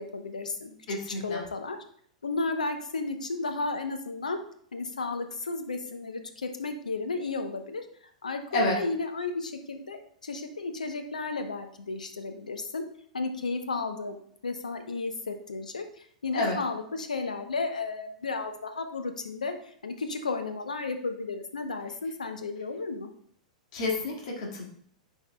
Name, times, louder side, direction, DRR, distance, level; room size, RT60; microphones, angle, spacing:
voice 1, 0.0-1.8 2.2-4.4 4.7-7.9 8.2-12.9 13.1-14.2 14.4-23.1, left 3 dB, 85° left, 7 dB, 0.8 m, -33 dB
voice 2, 0.9-1.4 8.5-8.8 16.3-16.6 23.7-24.6, left 2 dB, 60° left, -2 dB, 1.9 m, -29 dB
10.5 x 4.6 x 2.2 m, 0.62 s
hypercardioid pair, 100°, 4 cm